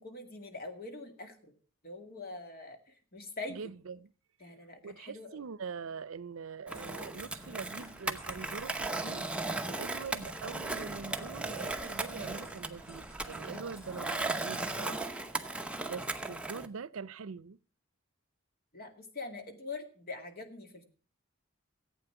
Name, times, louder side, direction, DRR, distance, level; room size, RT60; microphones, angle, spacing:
voice 1, 0.0-1.5 1.8-3.6 4.4-5.4 13.5-13.6 18.7-20.8, left 3 dB, 50° left, 2.2 m, -44 dB
voice 2, 3.5-4.1 4.8-9.3 9.7-15.5 15.9-17.6, right 5 dB, 85° right, 0.5 m, -43 dB
sound 1, 6.7-14.8, right 1 dB, 15° left, 3.0 m, -56 dB
Skateboard, 6.7-16.7, right 2 dB, 5° right, 0.8 m, -37 dB
15.0 x 8.6 x 5.9 m
head